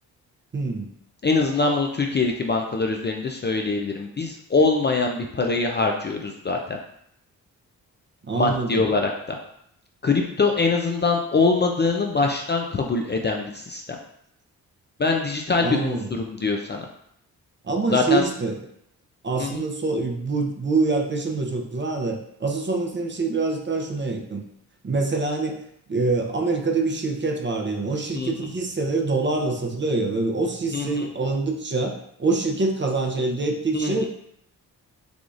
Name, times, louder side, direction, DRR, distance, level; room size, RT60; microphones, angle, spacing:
voice 1, 0.5-0.9 8.2-8.9 15.6-16.1 17.6-18.6 19.2-24.4 24.8-25.6 25.9-34.1, right 3 dB, 30° right, 2 dB, 0.7 m, -25 dB
voice 2, 1.2-6.8 8.3-9.4 10.0-14.0 15.0-16.9 17.9-18.2 19.4-19.6 28.1-28.3 30.7-31.1 33.7-34.1, left 3 dB, 25° left, 2 dB, 0.4 m, -23 dB
4.8 x 2.4 x 2.5 m, 0.72 s
supercardioid pair, 40°, 40 cm